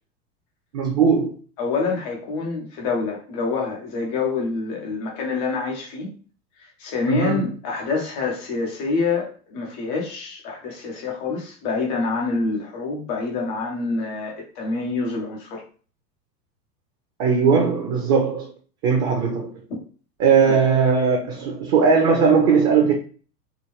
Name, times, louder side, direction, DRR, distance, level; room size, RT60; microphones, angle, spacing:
voice 1, 0.7-1.3 7.1-7.4 17.2-18.5 18.8-19.6 20.2-22.9, right 6 dB, 35° right, 0.7 m, -18 dB
voice 2, 1.6-6.1 6.6-15.6 20.5-20.6, left 4 dB, 15° left, 0.3 m, -26 dB
3.6 x 2.2 x 2.9 m
figure-of-eight pair, 90°, 48 cm